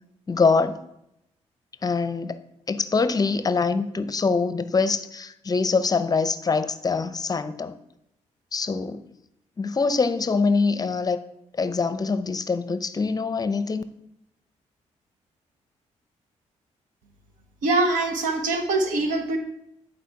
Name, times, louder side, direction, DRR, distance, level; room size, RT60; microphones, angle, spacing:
voice 1, 0.3-0.8 1.8-2.4 2.7-7.8 8.5-9.0 9.6-11.2 11.6-13.8, left 4 dB, 30° left, 12 dB, 0.6 m, -24 dB
voice 2, 17.6-19.4, right 2 dB, 90° right, 4 dB, 1.2 m, -23 dB
10.0 x 4.3 x 4.6 m, 0.81 s
cardioid pair, 75°, 13 cm